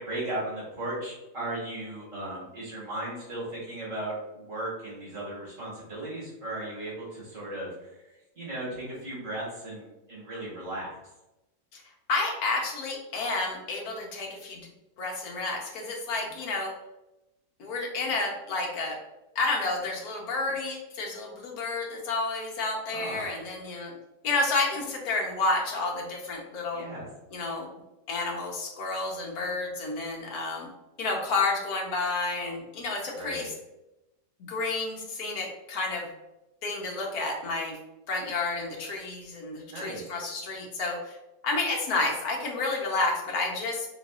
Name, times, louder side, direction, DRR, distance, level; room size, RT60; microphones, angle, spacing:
voice 1, 0.0-7.9 8.4-11.0 16.2-16.3 22.9-23.3 26.7-27.1 33.1-33.5 39.7-40.0, right 1 dB, 50° right, -7 dB, 2.0 m, -36 dB
voice 2, 12.1-14.6 15.0-16.7 17.6-19.0 19.3-23.9 24.2-26.8 27.3-27.7 28.1-30.7 31.0-33.5 34.5-36.1 36.6-37.7 38.1-41.2 41.4-43.9, left 3 dB, 65° left, 0 dB, 1.3 m, -30 dB
4.2 x 3.9 x 2.4 m, 0.96 s
omnidirectional pair, 1.8 m